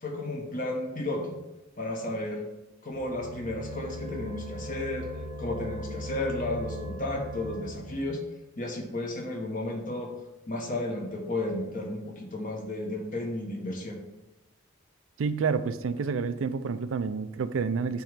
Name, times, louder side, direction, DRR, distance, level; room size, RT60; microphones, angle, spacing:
voice 1, 0.0-1.3 1.8-2.4 2.8-5.1 5.4-8.2 8.6-10.1 10.5-14.0, left 1 dB, 40° left, 1 dB, 1.3 m, -33 dB
sound 1, 2.9-8.1, equal, 30° right, 0.9 m, -38 dB
voice 2, 15.2-18.0, right 5 dB, 70° right, 12 dB, 0.4 m, -29 dB
8.6 x 3.1 x 5.2 m, 0.97 s
head